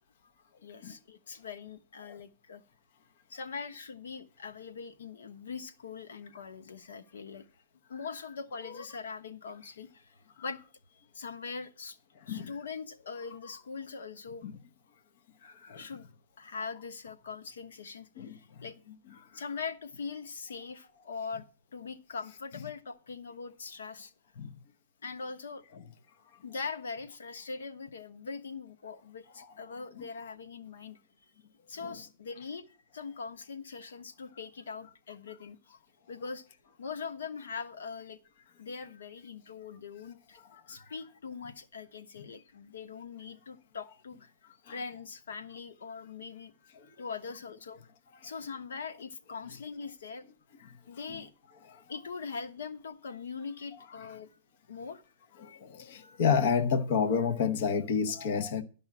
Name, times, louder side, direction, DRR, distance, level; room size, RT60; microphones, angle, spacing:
voice 1, 0.6-2.6 3.3-7.4 7.9-10.6 10.9-12.0 12.3-14.4 15.7-16.1 16.4-18.8 19.3-21.5 21.7-24.1 25.0-25.6 26.4-31.0 31.7-32.7 32.9-35.8 36.1-36.5 36.8-38.2 38.6-40.4 40.7-44.3 44.7-46.5 47.0-47.8 48.2-50.3 50.8-51.3 51.9-54.3 54.7-55.0, left 5 dB, 90° left, 1.1 m, -42 dB
voice 2, 55.6-58.6, left 6 dB, 50° left, 0.9 m, -28 dB
12.0 x 5.5 x 7.2 m
hypercardioid pair, 165°, 0 cm